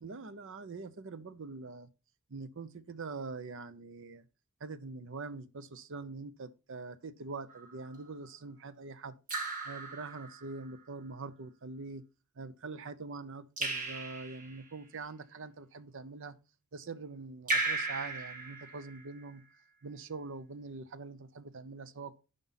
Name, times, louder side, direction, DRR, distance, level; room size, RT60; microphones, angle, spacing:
voice 1, 0.0-1.9 2.3-4.3 4.6-9.2 9.6-12.0 12.4-16.4 16.7-19.4 19.8-22.2, right 4 dB, 55° right, 0.7 m, -44 dB
Raindrop / Drip, 7.5-8.0 9.3-10.6 13.6-14.7 17.5-19.2, right 3 dB, 35° right, 2.0 m, -36 dB
11.0 x 5.3 x 4.0 m
head